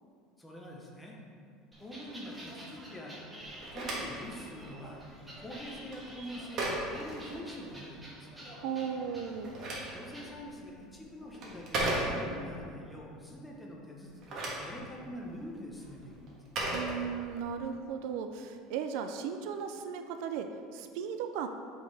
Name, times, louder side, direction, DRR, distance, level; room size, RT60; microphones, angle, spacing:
voice 1, 0.4-1.2 1.8-3.2 3.7-5.0 5.4-8.4 9.9-16.3, equal, 10° left, -2 dB, 0.8 m, -45 dB
sound 1, 1.7-10.3, right 1 dB, 10° right, 1.1 m, -49 dB
Telephone, 3.4-7.9 9.2-12.6 14.0-17.6, right 1 dB, 40° right, 1.4 m, -38 dB
voice 2, 8.6-9.5 16.7-21.5, right 7 dB, 65° right, 7 dB, 0.4 m, -36 dB
8.2 x 4.4 x 3.4 m, 2.3 s
cardioid pair, 155°, 0 cm